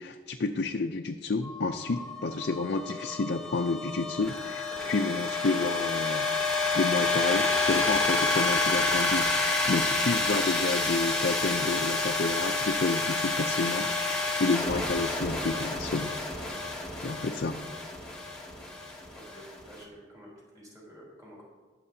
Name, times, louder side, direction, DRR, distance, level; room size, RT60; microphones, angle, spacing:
voice 1, 0.0-6.3 6.7-16.2 17.0-17.6, left 3 dB, 55° left, 4 dB, 0.5 m, -30 dB
sound 1, 1.4-19.7, left 3 dB, 5° left, 1.5 m, -29 dB
voice 2, 19.1-21.5, equal, 20° right, -5 dB, 3.7 m, -49 dB
21.0 x 7.7 x 2.8 m, 1.5 s
head